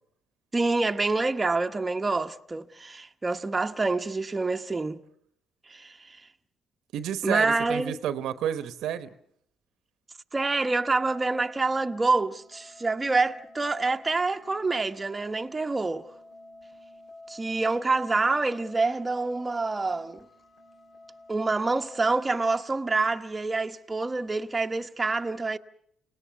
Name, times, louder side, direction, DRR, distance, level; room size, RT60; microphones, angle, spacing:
voice 1, 0.5-5.0 5.7-6.2 7.2-8.0 10.3-16.1 17.3-20.2 21.3-25.6, right 3 dB, 25° right, 0.9 m, -27 dB
voice 2, 6.9-9.1, right 10 dB, 70° right, 1.0 m, -30 dB
sound 1, 11.0-23.1, left 2 dB, 75° left, 4.3 m, -51 dB
28.5 x 18.0 x 7.0 m
hypercardioid pair, 55°, 0 cm